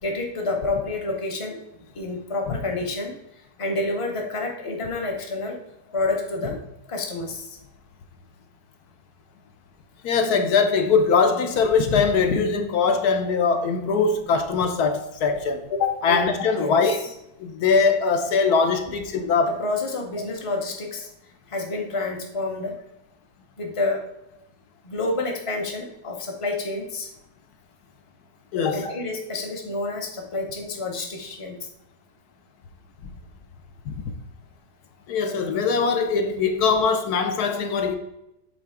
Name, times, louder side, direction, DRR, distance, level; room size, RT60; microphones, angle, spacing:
voice 1, 0.0-1.6 1.9-3.1 3.6-5.6 5.9-6.6 6.9-7.6 16.1-16.3 16.5-17.1 19.6-21.1 21.5-22.7 23.6-24.0 24.8-27.1 28.7-31.7, left 2 dB, 30° left, 0.6 m, -29 dB
voice 2, 10.0-17.0 17.4-19.6 28.5-28.8 33.9-34.0 35.1-38.0, left 5 dB, 70° left, 1.1 m, -21 dB
7.8 x 3.9 x 3.5 m
omnidirectional pair, 1.9 m